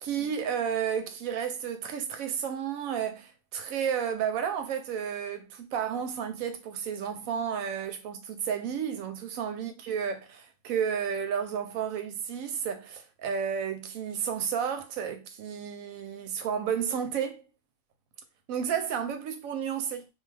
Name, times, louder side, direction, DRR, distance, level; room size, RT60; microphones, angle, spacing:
voice 1, 0.0-17.4 18.5-20.1, right 7 dB, 85° right, 1.0 m, -32 dB
2.4 x 2.4 x 3.2 m
omnidirectional pair, 1.4 m